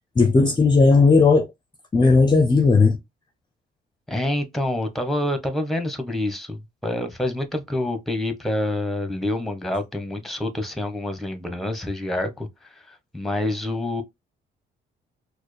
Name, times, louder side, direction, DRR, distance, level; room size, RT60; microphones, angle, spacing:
voice 1, 0.2-1.5 1.9-3.0, left 4 dB, 20° left, 0.5 m, -16 dB
voice 2, 4.1-12.5 12.9-14.0, left 1 dB, ahead, 1.0 m, -27 dB
4.3 x 2.2 x 3.2 m
cardioid pair, 90°, 20 cm